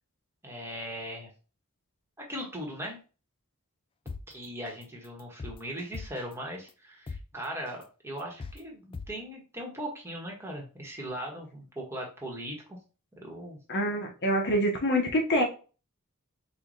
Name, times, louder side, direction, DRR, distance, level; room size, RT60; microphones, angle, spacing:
voice 1, 0.4-1.3 2.2-3.0 4.3-12.8 13.2-13.6, equal, 10° right, -1 dB, 1.2 m, -39 dB
sound 1, 4.1-4.2 4.7-4.8 5.2-6.3 6.7-6.8 7.1-7.2 7.7-7.8 8.2-8.6 8.9-9.1, left 4 dB, 25° left, 0.3 m, -39 dB
voice 2, 13.7-15.4, equal, 50° left, 2 dB, 1.0 m, -26 dB
4.8 x 2.4 x 3.9 m, 0.35 s
head